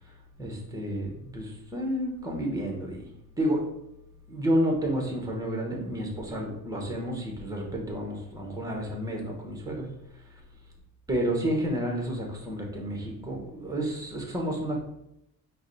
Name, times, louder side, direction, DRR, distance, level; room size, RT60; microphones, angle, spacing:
voice 1, 0.4-3.1 3.4-3.6 4.3-9.9 11.1-14.8, equal, 10° right, 0 dB, 1.0 m, -30 dB
4.5 x 2.3 x 4.0 m, 0.81 s
cardioid pair, 130°, 37 cm